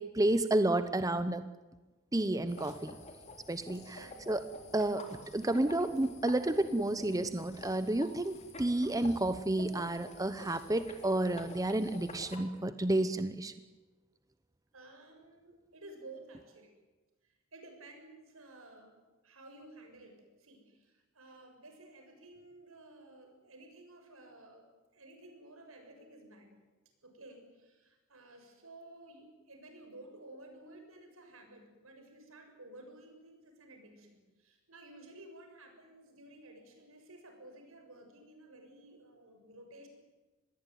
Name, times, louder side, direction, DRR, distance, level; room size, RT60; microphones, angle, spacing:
voice 1, 0.0-1.4 2.1-3.0 3.5-4.4 4.7-5.0 5.3-13.5, right 1 dB, 15° right, 11 dB, 0.9 m, -31 dB
sound 1, 2.5-12.4, left 2 dB, 35° left, 3.7 m, -49 dB
voice 2, 3.9-4.3 14.7-16.7 17.2-19.0 19.2-24.7 24.9-26.6 27.0-39.9, right 2 dB, 85° right, 5 dB, 7.0 m, -54 dB
26.0 x 20.5 x 9.4 m, 1.2 s
head